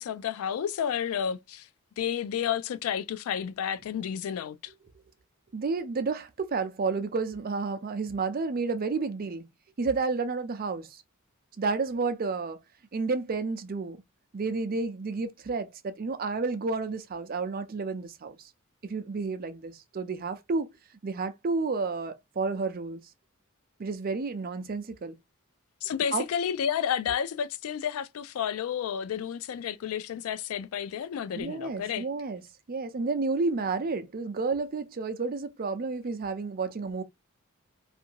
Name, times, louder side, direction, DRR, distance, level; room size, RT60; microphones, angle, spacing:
voice 1, 0.0-1.7 2.0-4.7 25.8-32.1, left 8 dB, 80° left, 0.3 m, -31 dB
voice 2, 5.5-9.5 9.8-11.0 11.6-12.6 12.9-14.0 14.3-18.4 18.8-20.7 21.0-23.0 23.8-25.2 26.1-26.2 31.3-32.4 32.7-37.0, right 4 dB, 45° right, 0.5 m, -31 dB
2.6 x 2.5 x 2.8 m
head